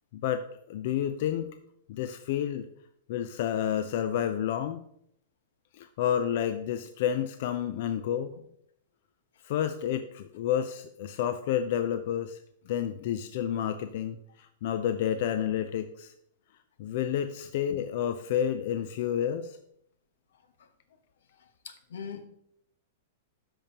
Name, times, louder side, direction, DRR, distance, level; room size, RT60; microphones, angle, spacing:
voice 1, 0.1-1.6 1.9-2.7 3.1-4.8 5.7-8.3 9.4-12.4 12.7-16.1 16.8-19.6, left 9 dB, 50° left, 10 dB, 0.4 m, -30 dB
voice 2, 21.4-22.2, left 6 dB, 85° left, 9 dB, 1.0 m, -42 dB
12.5 x 5.2 x 2.9 m, 0.71 s
supercardioid pair, 160°, 0 cm